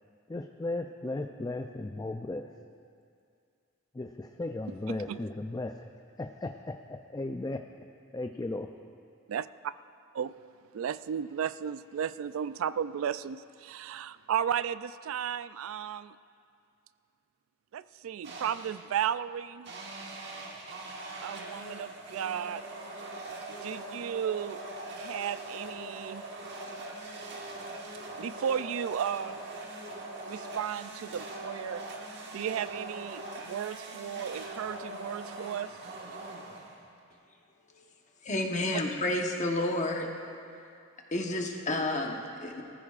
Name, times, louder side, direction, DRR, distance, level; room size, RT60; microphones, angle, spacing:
voice 1, 0.3-2.5 3.9-5.9 6.2-7.6 8.1-8.7, left 2 dB, 20° left, 5 dB, 0.4 m, -36 dB
voice 2, 9.3-9.7 10.1-10.3 10.7-16.1 17.7-19.7 21.2-22.6 23.6-24.6 25.0-26.2 28.2-29.4 30.3-31.8 32.3-35.7, right 8 dB, 80° right, 15 dB, 0.3 m, -34 dB
sound 1, 18.2-18.9 19.7-37.0, right 2 dB, 55° right, 1.5 m, -42 dB
voice 3, 38.2-40.1 41.1-42.6, left 1 dB, 35° left, 1 dB, 1.1 m, -30 dB
19.5 x 14.5 x 2.5 m, 2.4 s
head